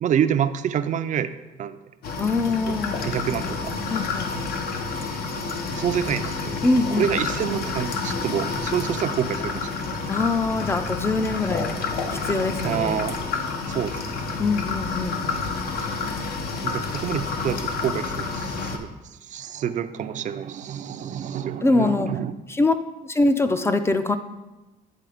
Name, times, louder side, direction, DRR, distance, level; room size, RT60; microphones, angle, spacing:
voice 1, 0.0-1.3 1.6-1.8 2.6-2.7 3.0-3.7 5.8-6.6 6.9-9.8 12.6-13.2 13.7-14.0 16.6-18.9 19.2-22.3, right 9 dB, 50° right, 11 dB, 0.4 m, -27 dB
sound 1, 2.0-18.8, left 4 dB, 65° left, 0.9 m, -29 dB
voice 2, 2.2-3.1 3.9-4.3 6.6-7.1 10.1-11.7 12.3-13.0 14.4-15.2 21.6-22.1 22.5-22.8 23.0-24.2, left 3 dB, 15° left, 9 dB, 0.4 m, -23 dB
9.2 x 3.9 x 5.0 m, 1.1 s
cardioid pair, 110°, 17 cm